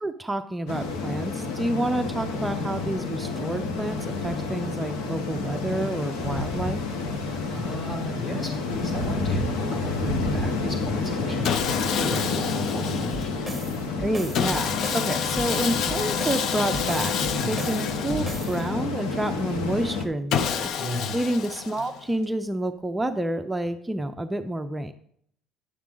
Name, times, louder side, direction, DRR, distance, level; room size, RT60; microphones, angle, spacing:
voice 1, 0.0-6.8 14.0-17.1 17.5-20.7 21.1-24.9, right 1 dB, 10° right, 7 dB, 0.4 m, -29 dB
sound 1, 0.7-20.1, left 3 dB, 90° left, 1.2 m, -30 dB
voice 2, 7.2-13.3 17.3-17.6 20.8-21.1, left 1 dB, 35° left, 0 dB, 3.1 m, -34 dB
Sawing, 11.4-13.5 14.3-18.9 20.3-22.1, left 7 dB, 55° left, 0.5 m, -29 dB
sound 2, 13.1-18.6, right 2 dB, 5° left, 1.4 m, -37 dB
10.5 x 7.3 x 3.8 m, 0.66 s
cardioid pair, 130°, 0 cm